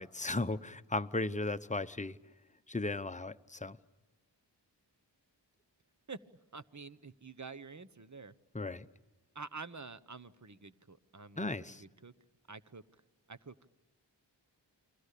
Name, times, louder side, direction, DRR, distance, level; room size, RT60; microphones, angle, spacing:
voice 1, 0.0-2.2 2.7-3.8 8.5-8.9 11.4-11.8, left 2 dB, 15° left, 11 dB, 0.8 m, -36 dB
voice 2, 6.5-8.3 9.3-12.1 12.5-12.8 13.3-13.5, right 4 dB, 40° right, 13 dB, 1.1 m, -48 dB
29.5 x 22.5 x 8.4 m, 1.1 s
wide cardioid pair, 40°, 44 cm